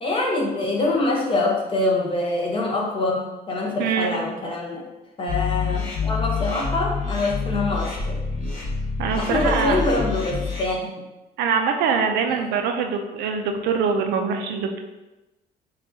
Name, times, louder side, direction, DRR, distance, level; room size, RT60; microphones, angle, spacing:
voice 1, 0.0-4.8 5.2-8.2 9.2-10.9 12.3-12.4, left 2 dB, 30° left, -1 dB, 0.9 m, -25 dB
voice 2, 3.8-4.1 9.0-9.9 11.4-14.8, right 6 dB, 80° right, 4 dB, 0.6 m, -23 dB
sound 1, 5.3-10.6, left 4 dB, 50° left, 1.2 m, -27 dB
5.5 x 2.5 x 2.7 m, 1.1 s
cardioid pair, 110°, 17 cm